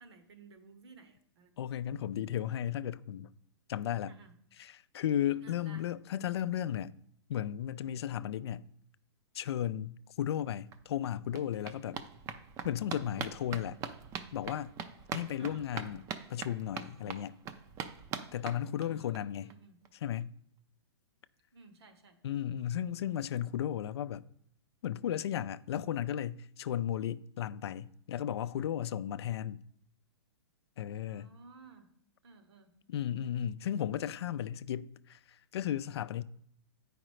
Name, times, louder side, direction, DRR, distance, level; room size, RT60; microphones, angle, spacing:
voice 1, 0.0-1.5 4.1-4.3 5.4-5.9 15.4-15.9 18.8-19.8 21.5-22.2 31.1-31.9 32.2-32.7, right 4 dB, 70° right, 1.1 m, -56 dB
voice 2, 1.6-3.3 3.7-4.1 4.6-6.9 7.3-8.7 9.3-12.0 12.6-13.8 14.3-14.8 15.1-16.0 16.3-17.4 18.3-19.5 20.0-20.4 22.2-24.2 24.8-29.6 30.8-31.3 32.9-35.2 35.5-36.2, left 10 dB, 70° left, 0.4 m, -35 dB
sound 1, 10.4-10.5 10.7-19.2 19.5-19.6 19.9-20.0 20.2-20.3, right 7 dB, 20° right, 0.4 m, -43 dB
8.8 x 5.0 x 3.2 m
hypercardioid pair, 140°, 14 cm